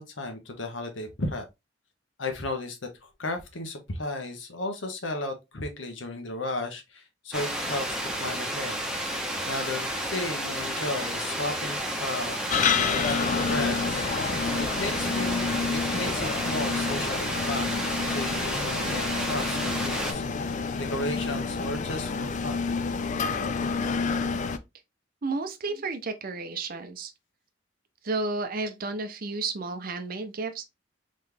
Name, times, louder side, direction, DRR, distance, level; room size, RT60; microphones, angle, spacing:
voice 1, 0.0-1.4 2.2-8.9 9.5-14.1 14.3-22.7, left 2 dB, 85° left, 1.1 m, -35 dB
sound 1, 7.3-20.1, right 1 dB, 5° right, 0.9 m, -31 dB
sound 2, 12.5-24.6, left 5 dB, 40° left, 0.4 m, -29 dB
voice 2, 25.2-27.1 28.0-30.6, right 3 dB, 50° right, 0.6 m, -32 dB
3.9 x 3.1 x 3.4 m
head